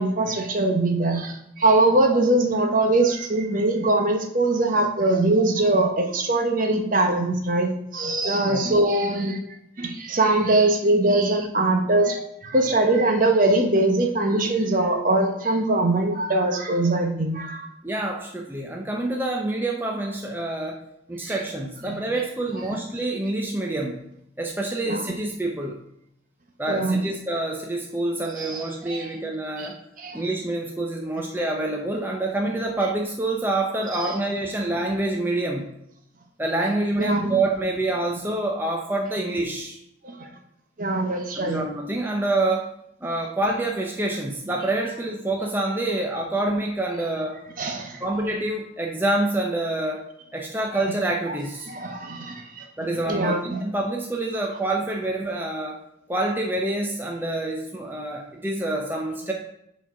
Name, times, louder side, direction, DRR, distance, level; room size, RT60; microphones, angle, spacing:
voice 1, 0.0-9.4 9.8-17.6 21.3-21.4 21.9-22.0 22.7-22.8 24.8-25.0 26.7-27.0 28.3-28.6 28.9-29.1 29.6-29.7 30.0-30.2 33.9-34.1 37.0-37.3 40.0-40.3 40.8-41.6 47.6-48.0 51.3-51.4 51.7-52.6 53.1-53.6, right 2 dB, 45° right, 4 dB, 1.0 m, -22 dB
voice 2, 17.8-20.8 21.1-24.0 24.4-25.8 26.6-29.8 30.1-35.7 36.4-39.8 41.4-42.7 43.0-47.4 48.0-50.0 50.3-51.7 52.8-55.8 56.1-59.3, right 2 dB, 10° right, 0 dB, 0.6 m, -27 dB
6.9 x 4.5 x 5.7 m, 0.78 s
head